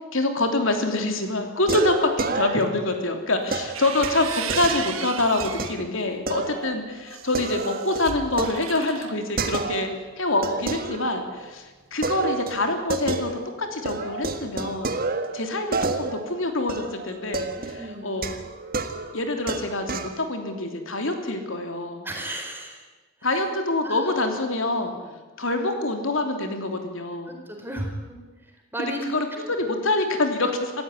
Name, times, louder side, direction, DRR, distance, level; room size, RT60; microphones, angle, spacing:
voice 1, 0.1-9.9 10.2-14.9 15.3-18.3 19.1-22.1 23.2-24.9 25.4-27.3 28.8-30.7, left 2 dB, 65° left, 5 dB, 3.1 m, -26 dB
sound 1, 0.7-1.1 1.7-2.9 3.5-5.7 6.3-6.7 7.1-10.0 10.4-11.5 12.0-13.6 13.9-20.2, right 3 dB, 40° right, 1.7 m, -31 dB
sound 2, 3.5-5.8 6.3-9.1, right 8 dB, 70° right, 1.9 m, -35 dB
voice 2, 17.6-18.3 22.0-22.8 23.2-23.5 23.8-24.1 24.8-25.1 27.3-29.0, right 1 dB, 10° right, 1 dB, 4.5 m, -35 dB
27.0 x 15.0 x 10.0 m, 1.2 s
head